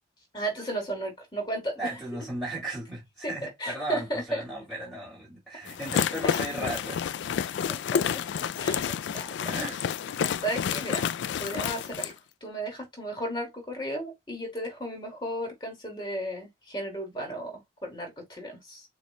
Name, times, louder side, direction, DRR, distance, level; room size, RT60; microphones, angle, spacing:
voice 1, 0.3-1.8 3.4-4.4 6.2-6.7 7.7-8.2 8.6-9.6 10.2-11.0 11.4-12.1 12.4-18.8, right 1 dB, 25° left, 2.2 m, -34 dB
voice 2, 1.8-7.4 9.0-9.1 9.4-9.8, right 1 dB, ahead, 2.4 m, -36 dB
sound 1, 5.7-12.1, left 8 dB, 65° left, 0.3 m, -29 dB
7.0 x 2.4 x 2.2 m
head